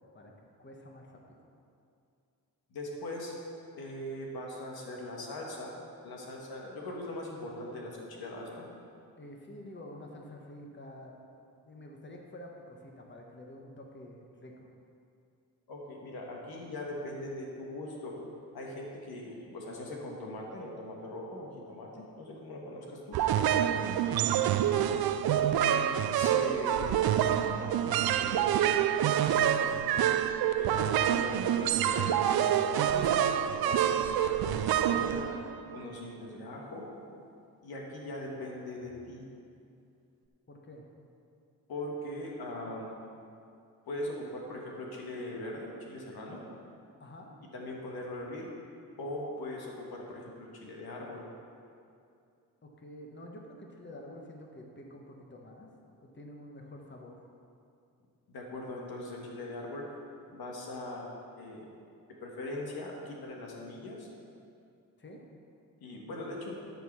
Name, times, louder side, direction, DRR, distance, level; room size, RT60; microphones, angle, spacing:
voice 1, 0.6-1.5 9.2-11.1 11.6-14.7 40.5-40.9 47.0-47.3 52.6-55.7 56.0-57.2 65.0-65.2, left 1 dB, 30° left, 0 dB, 1.3 m, -48 dB
voice 2, 2.7-3.3 3.8-5.7 6.0-8.7 15.7-18.2 18.5-23.2 24.0-24.7 25.6-27.0 27.6-28.7 29.4-30.1 30.6-33.1 33.6-35.3 35.7-36.9 37.6-39.2 41.7-42.9 43.9-46.4 47.5-48.5 49.0-51.2 58.3-59.8 60.3-61.1 61.4-61.7 62.2-64.1 65.8-66.6, left 1 dB, 80° left, -2 dB, 1.7 m, -40 dB
sound 1, 23.1-35.8, right 10 dB, 75° right, 0.5 m, -27 dB
12.0 x 4.7 x 6.1 m, 2.5 s
cardioid pair, 65°, 37 cm